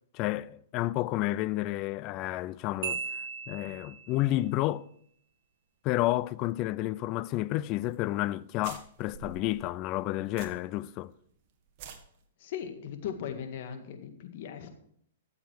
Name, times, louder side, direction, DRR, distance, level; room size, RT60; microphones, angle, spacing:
voice 1, 0.1-3.0 3.5-4.9 5.8-11.1, left 16 dB, 40° left, 0.4 m, -30 dB
Marimba xylophone, 2.8-4.2, right 6 dB, 60° right, 1.8 m, -36 dB
sound 1, 7.9-8.0 8.3-8.4 8.6-10.9 11.2-11.3 11.7-12.0, right 8 dB, 45° right, 1.6 m, -47 dB
voice 2, 12.4-14.7, left 8 dB, 55° left, 1.8 m, -38 dB
13.5 x 7.3 x 4.7 m
hypercardioid pair, 125°, 0 cm